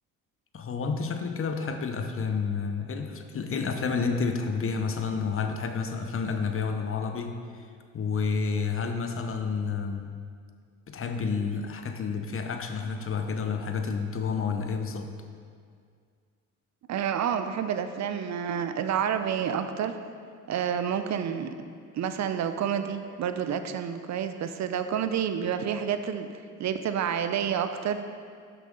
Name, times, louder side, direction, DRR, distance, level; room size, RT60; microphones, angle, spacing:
voice 1, 0.5-7.4 7.9-10.2 10.9-15.1, left 5 dB, 35° left, 6 dB, 0.8 m, -30 dB
voice 2, 16.9-19.9 20.5-21.6 21.9-26.3 26.6-28.0, right 8 dB, 45° right, 9 dB, 0.6 m, -29 dB
5.9 x 5.8 x 5.3 m, 2.1 s
hypercardioid pair, 60°, 39 cm